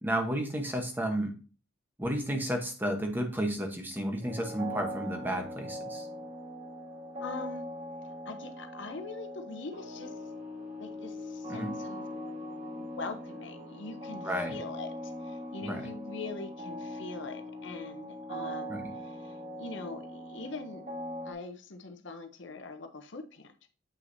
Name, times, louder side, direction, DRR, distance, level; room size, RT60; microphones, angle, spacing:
voice 1, 0.0-1.3 2.0-6.1 11.5-11.7 14.2-14.6 15.6-15.8 18.7-18.9, right 1 dB, 10° right, 4 dB, 1.0 m, -32 dB
sound 1, 4.2-21.3, equal, 35° right, 1.5 m, -41 dB
voice 2, 7.2-7.7 8.0-10.1 10.8-12.1 12.3-20.9 21.2-23.7, left 3 dB, 65° left, 7 dB, 0.8 m, -43 dB
7.9 x 5.8 x 2.7 m, 0.37 s
head